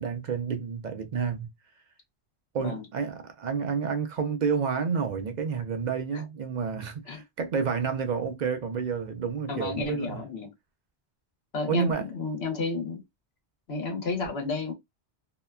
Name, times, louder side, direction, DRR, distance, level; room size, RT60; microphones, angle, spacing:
voice 1, 0.0-1.5 2.5-10.2 11.6-12.1, right 6 dB, 50° right, 0.5 m, -30 dB
voice 2, 9.5-10.5 11.5-13.0 13.7-14.7, left 3 dB, 65° left, 1.2 m, -31 dB
2.8 x 2.1 x 2.3 m
omnidirectional pair, 1.2 m